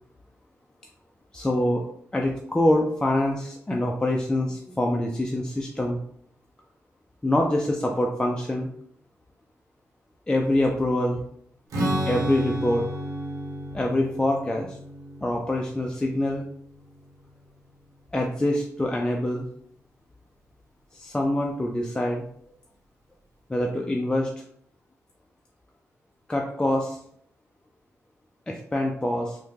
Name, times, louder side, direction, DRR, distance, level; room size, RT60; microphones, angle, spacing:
voice 1, 1.3-1.8 2.1-6.0 7.2-8.7 10.3-11.2 12.1-12.8 13.7-14.8 15.2-16.4 18.1-19.5 20.9-22.2 23.5-24.3 26.3-27.0 28.5-29.4, left 1 dB, 15° left, 0 dB, 0.4 m, -25 dB
Strum, 11.7-17.3, equal, 75° right, 0.8 m, -32 dB
3.4 x 2.1 x 3.1 m, 0.66 s
cardioid pair, 75°, 6 cm